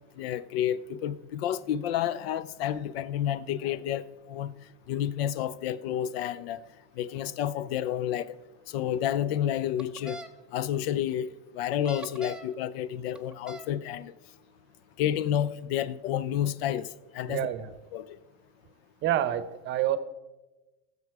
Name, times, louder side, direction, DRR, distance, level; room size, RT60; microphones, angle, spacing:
voice 1, 0.2-4.5 4.9-6.6 7.0-8.4 8.7-10.2 10.5-14.1 15.0-17.5 17.9-18.2, left 10 dB, 85° left, 0.6 m, -30 dB
sound 1, 9.8-10.3 11.7-12.5 13.1-13.7, right 1 dB, 5° right, 0.5 m, -42 dB
voice 2, 17.3-17.7 19.0-20.0, right 12 dB, 40° right, 0.7 m, -28 dB
14.5 x 6.9 x 4.7 m
supercardioid pair, 140°, 30 cm